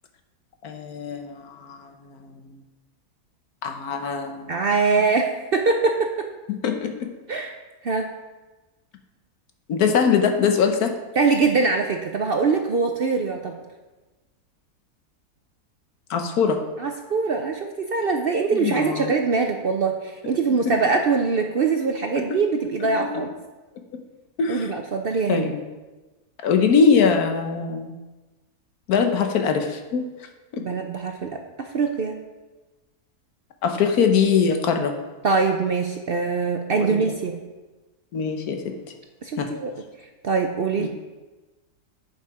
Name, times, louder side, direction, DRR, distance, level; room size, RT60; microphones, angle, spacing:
voice 1, 0.6-2.6 3.6-4.6 6.5-7.1 9.7-10.9 16.1-16.6 18.5-19.1 20.6-20.7 22.2-22.3 23.1-23.2 24.4-24.7 25.3-25.6 26.4-28.0 28.9-30.0 30.5-30.7 33.6-34.9 36.7-37.0 38.1-38.7 39.4-39.5 40.8-40.9, left 6 dB, 75° left, 5 dB, 1.4 m, -22 dB
voice 2, 4.5-6.3 7.3-7.5 7.8-8.1 11.2-13.5 16.8-23.3 24.5-25.5 30.6-31.3 31.6-32.2 35.2-37.3 39.2-39.7 40.2-40.9, right 4 dB, 60° right, 4 dB, 0.6 m, -23 dB
8.0 x 6.9 x 4.8 m, 1.2 s
omnidirectional pair, 1.7 m